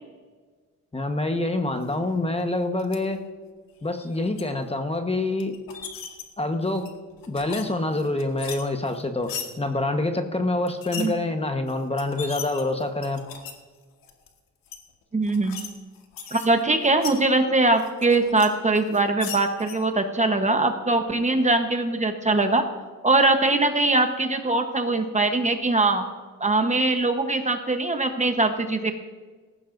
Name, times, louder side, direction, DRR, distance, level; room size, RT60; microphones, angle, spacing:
voice 1, 0.9-3.2 3.8-5.5 6.4-6.9 7.3-13.2, left 2 dB, 20° left, 6 dB, 1.2 m, -26 dB
sound 1, 2.8-3.0 3.8-4.4 5.4-6.2 6.7-7.6 7.9-9.5 10.7-11.1 11.7-11.8 12.0-13.5 14.0-14.3 14.7-14.8 15.2-15.7 15.9-17.2 17.7-18.5 18.7-19.8, left 7 dB, 85° left, 1.7 m, -37 dB
voice 2, 15.1-15.6 16.3-22.6 23.0-26.0 26.4-28.9, right 2 dB, 20° right, 6 dB, 1.1 m, -22 dB
18.5 x 15.0 x 2.6 m, 1.4 s
cardioid pair, 105°, 33 cm